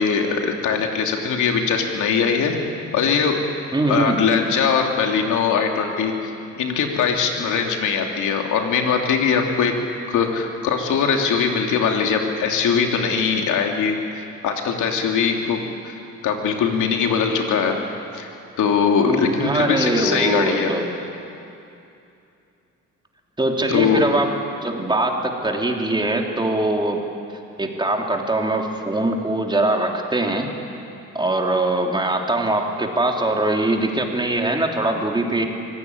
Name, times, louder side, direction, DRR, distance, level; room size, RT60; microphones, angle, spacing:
voice 1, 0.0-2.6 2.9-3.5 3.9-9.7 10.1-15.6 15.8-15.9 16.2-17.8 18.1-18.3 18.6-20.7 23.7-24.1, left 6 dB, 80° left, 2 dB, 3.1 m, -21 dB
voice 2, 3.7-4.2 19.0-20.9 23.4-24.3 24.6-27.0 27.6-30.5 31.1-35.5, right 2 dB, 15° right, 1 dB, 3.3 m, -22 dB
24.5 x 16.5 x 9.7 m, 2.7 s
cardioid pair, 90°, 30 cm